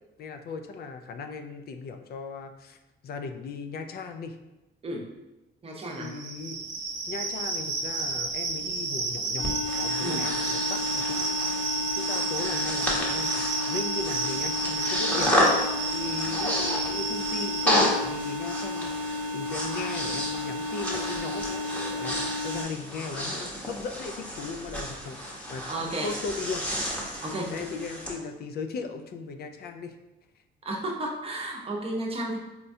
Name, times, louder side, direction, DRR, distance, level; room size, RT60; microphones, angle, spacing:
voice 1, 0.2-2.8 3.0-4.4 5.9-6.7 7.1-9.5 9.8-15.3 15.9-25.7 26.0-26.6 27.2-27.3 27.5-30.0, left 4 dB, 55° left, 7 dB, 0.4 m, -37 dB
voice 2, 5.6-6.1 10.0-10.2 25.7-26.1 27.2-27.5 30.6-32.4, right 1 dB, 30° right, -1 dB, 0.7 m, -32 dB
sound 1, 5.9-17.8, right 3 dB, 70° right, 0.7 m, -31 dB
sound 2, 9.4-22.6, left 2 dB, 75° left, 0.8 m, -33 dB
Breathing, 9.4-28.1, equal, 5° left, 0.9 m, -31 dB
4.2 x 2.2 x 2.6 m, 1.0 s
cardioid pair, 90°, 20 cm